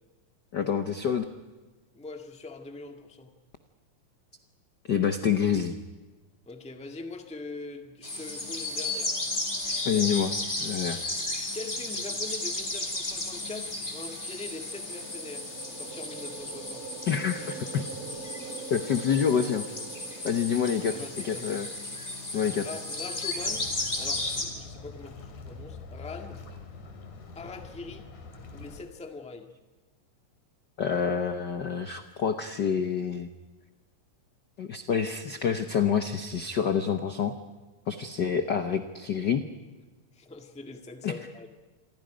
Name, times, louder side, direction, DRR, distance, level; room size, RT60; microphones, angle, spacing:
voice 1, 0.5-1.2 4.9-5.8 9.8-10.3 10.6-11.0 17.1-17.8 18.7-19.7 20.2-21.7 22.3-22.7 30.8-33.3 34.6-37.3 37.9-39.4 41.0-41.1, left 7 dB, 60° left, 8 dB, 1.1 m, -27 dB
voice 2, 1.9-3.3 6.4-9.1 9.9-10.1 11.5-15.5 15.7-16.9 20.9-21.5 22.6-26.4 27.3-28.1 28.5-29.5 40.1-41.5, left 3 dB, 5° left, 4 dB, 1.1 m, -42 dB
sound 1, 8.0-24.4, left 2 dB, 20° left, 3.9 m, -34 dB
sound 2, 14.3-22.0, right 6 dB, 50° right, 2.4 m, -44 dB
sound 3, 23.4-28.9, left 4 dB, 90° left, 4.2 m, -45 dB
28.5 x 22.5 x 5.2 m, 1.2 s
omnidirectional pair, 3.3 m